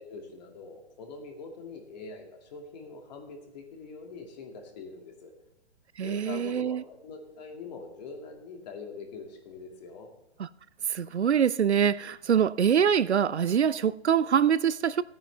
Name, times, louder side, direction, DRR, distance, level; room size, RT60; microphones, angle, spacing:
voice 1, 0.0-5.3 6.0-10.1, left 4 dB, 40° left, 2.2 m, -43 dB
voice 2, 6.0-6.8 10.4-10.5 10.9-15.0, right 8 dB, 80° right, 0.5 m, -24 dB
16.5 x 9.2 x 3.3 m
figure-of-eight pair, 130°, 33 cm